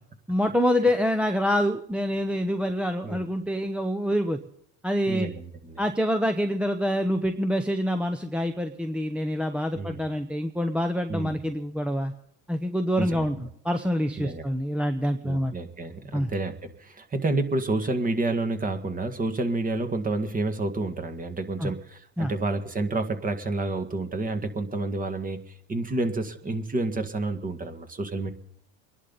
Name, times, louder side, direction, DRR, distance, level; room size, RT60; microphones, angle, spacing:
voice 1, 0.3-4.4 4.8-5.3 5.8-12.1 12.5-13.4 13.6-15.5 16.1-16.3 21.6-21.7 22.2-22.3, equal, 5° right, 6 dB, 0.7 m, -26 dB
voice 2, 5.1-5.8 9.8-10.0 11.1-11.4 13.0-13.3 14.2-14.4 15.2-25.4 25.7-28.3, right 2 dB, 25° right, 8 dB, 1.7 m, -29 dB
25.5 x 11.0 x 4.0 m, 0.72 s
supercardioid pair, 100°, 35 cm